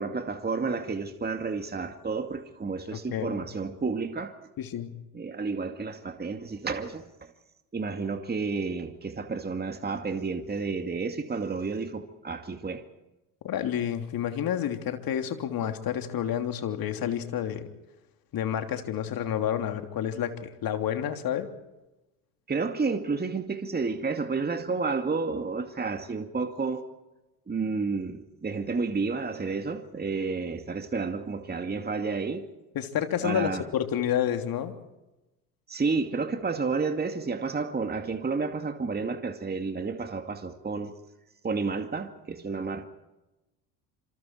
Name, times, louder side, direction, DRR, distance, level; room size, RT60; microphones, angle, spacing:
voice 1, 0.0-4.4 5.1-7.3 7.7-12.8 22.5-26.8 27.5-32.4 33.2-33.6 35.7-40.9 41.4-42.9, right 4 dB, 20° right, 2.3 m, -31 dB
voice 2, 2.9-3.4 4.6-4.9 13.4-17.6 18.3-21.5 32.7-34.7, left 10 dB, 50° left, 3.1 m, -29 dB
27.5 x 27.0 x 4.6 m
hypercardioid pair, 65°, 46 cm